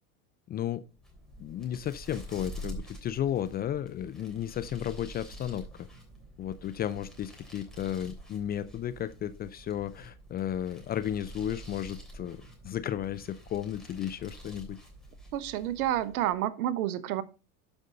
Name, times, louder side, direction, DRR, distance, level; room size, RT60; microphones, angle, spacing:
voice 1, 0.5-0.8 1.4-5.6 6.4-12.4 12.6-14.8, left 10 dB, 25° left, 14 dB, 0.4 m, -33 dB
sound 1, 0.9-16.4, right 1 dB, ahead, 3.3 m, -47 dB
voice 2, 15.3-17.2, right 12 dB, 75° right, 15 dB, 1.0 m, -29 dB
12.0 x 5.3 x 3.8 m, 0.31 s
hypercardioid pair, 95°, 45 cm